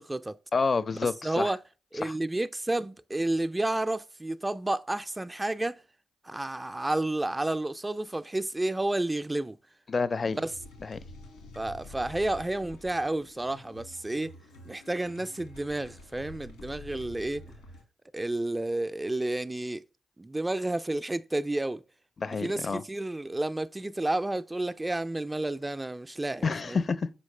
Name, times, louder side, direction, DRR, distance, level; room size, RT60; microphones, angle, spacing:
voice 1, 0.0-0.4 1.0-1.6 1.9-5.8 6.2-9.6 10.4-10.5 11.6-14.4 14.7-17.5 18.1-19.8 20.2-21.8 22.4-26.8, right 2 dB, 20° right, 0.3 m, -31 dB
voice 2, 0.5-1.5 2.0-2.1 9.9-10.4 10.8-11.0 22.2-22.8 26.4-27.1, left 4 dB, 45° left, 0.5 m, -28 dB
sound 1, 10.3-17.8, left 2 dB, 90° left, 1.5 m, -48 dB
6.3 x 4.7 x 3.2 m
hypercardioid pair, 45°, 0 cm